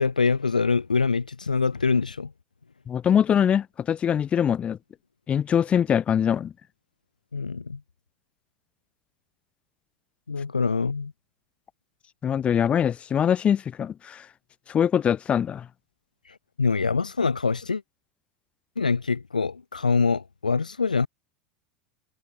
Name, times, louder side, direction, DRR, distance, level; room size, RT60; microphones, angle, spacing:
voice 1, 0.0-2.3 7.3-7.8 10.3-11.1 16.3-17.8 18.8-21.1, left 4 dB, 85° left, 1.1 m, -24 dB
voice 2, 2.9-4.8 5.3-6.5 12.2-14.2 14.7-15.7, left 8 dB, 30° left, 2.6 m, -23 dB
figure-of-eight pair, 85°, 4 cm